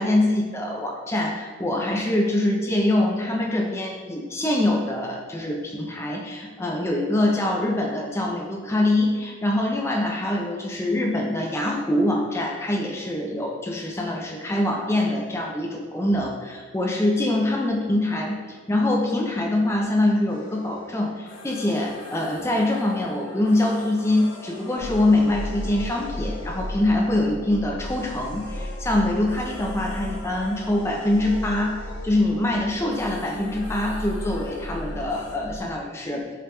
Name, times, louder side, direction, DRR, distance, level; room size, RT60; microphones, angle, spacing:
voice 1, 0.0-31.8 32.0-36.2, left 1 dB, 15° left, 0 dB, 0.3 m, -24 dB
sound 1, 20.3-35.4, left 3 dB, 60° left, 0.5 m, -43 dB
sound 2, 24.8-35.6, equal, 65° right, 0.4 m, -35 dB
4.9 x 2.9 x 2.2 m, 1.5 s
head